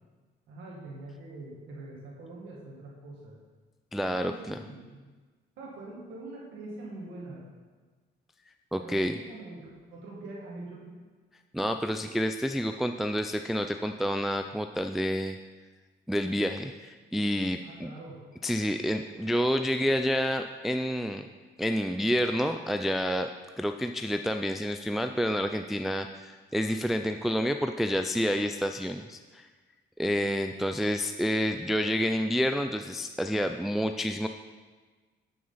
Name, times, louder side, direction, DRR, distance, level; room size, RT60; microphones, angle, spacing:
voice 1, 0.5-3.4 4.1-5.0 5.6-7.4 8.8-11.0 17.6-18.2, right 2 dB, 85° right, -4 dB, 2.0 m, -44 dB
voice 2, 3.9-4.6 8.7-9.1 11.5-15.4 16.1-17.9 18.4-21.2 21.6-23.3 23.6-29.5 30.0-34.3, equal, ahead, 6 dB, 0.3 m, -29 dB
11.0 x 6.3 x 4.1 m, 1.4 s
cardioid pair, 90°, 20 cm